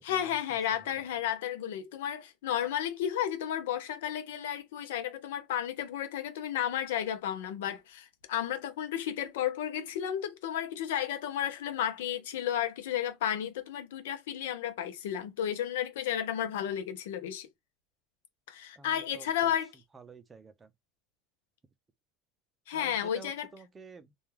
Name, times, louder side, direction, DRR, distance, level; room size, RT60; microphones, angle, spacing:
voice 1, 0.0-17.5 18.5-19.7 22.7-23.5, left 10 dB, 85° left, 0.6 m, -33 dB
voice 2, 18.8-19.5 19.9-20.7 22.7-24.1, right 4 dB, 25° right, 0.5 m, -50 dB
2.3 x 2.1 x 3.1 m
supercardioid pair, 105°, 0 cm